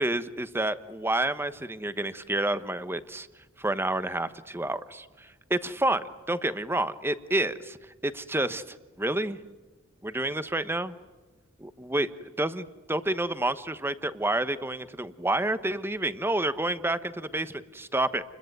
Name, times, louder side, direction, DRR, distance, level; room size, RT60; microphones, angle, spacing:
voice 1, 0.0-3.3 3.6-7.8 8.0-9.4 10.0-10.9 11.6-12.1 12.4-18.2, right 1 dB, 10° right, 13 dB, 1.1 m, -29 dB
29.5 x 21.5 x 9.3 m, 1.2 s
head